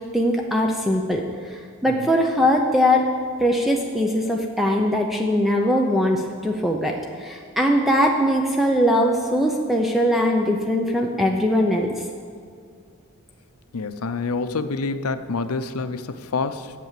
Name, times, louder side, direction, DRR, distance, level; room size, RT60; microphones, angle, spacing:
voice 1, 0.1-1.2 1.8-3.1 3.4-11.9, equal, ahead, 1 dB, 0.6 m, -21 dB
voice 2, 13.7-16.7, left 4 dB, 75° left, 11 dB, 0.6 m, -27 dB
8.4 x 8.3 x 7.5 m, 2.3 s
head